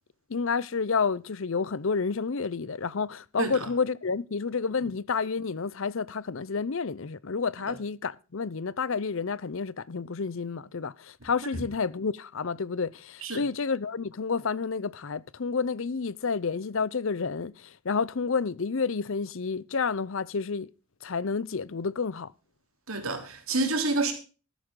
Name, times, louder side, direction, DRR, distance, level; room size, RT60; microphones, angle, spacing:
voice 1, 0.3-20.7 21.0-22.3, left 5 dB, 60° left, 0.6 m, -30 dB
voice 2, 22.9-24.1, right 2 dB, 70° right, 3.4 m, -28 dB
13.5 x 11.0 x 3.8 m
head